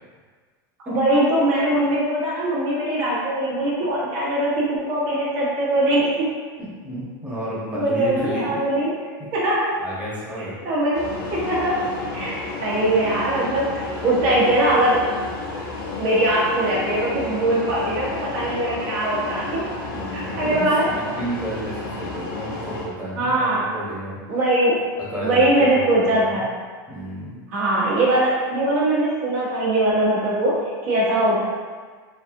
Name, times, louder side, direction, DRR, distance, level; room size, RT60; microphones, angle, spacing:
voice 1, 0.8-6.3 7.7-8.9 9.3-9.7 10.6-11.8 12.1-12.3 12.6-15.0 16.0-19.7 20.1-20.9 23.2-23.7 24.3-24.8 25.2-26.5 27.5-31.4, right 1 dB, 60° right, -8 dB, 1.2 m, -21 dB
voice 2, 6.6-8.6 9.8-10.5 19.9-24.4 25.1-26.4 26.9-27.4, right 1 dB, 10° right, -7 dB, 1.0 m, -32 dB
sound 1, 10.9-22.8, left 3 dB, 85° left, 0.8 m, -32 dB
3.2 x 2.6 x 2.6 m, 1.5 s
supercardioid pair, 120°, 12 cm